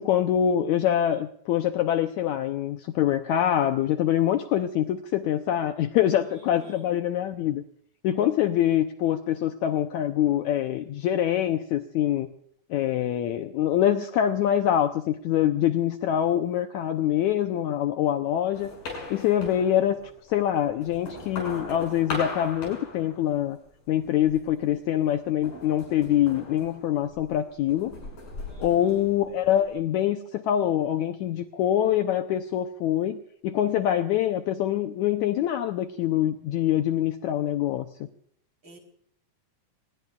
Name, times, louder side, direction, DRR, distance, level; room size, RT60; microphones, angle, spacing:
voice 1, 0.0-7.6 8.0-12.3 12.7-18.7 19.1-20.0 20.3-23.6 23.9-27.9 28.6-37.9, left 11 dB, 85° left, 7 dB, 1.6 m, -25 dB
voice 2, 6.2-6.9 28.4-29.1 38.6-38.8, equal, 35° right, 3 dB, 4.2 m, -49 dB
sound 1, 18.5-20.2 20.6-23.6 24.0-24.6 25.4-27.3 27.7-29.7, left 3 dB, 65° left, 8.1 m, -39 dB
25.5 x 20.0 x 2.4 m, 0.64 s
omnidirectional pair, 4.3 m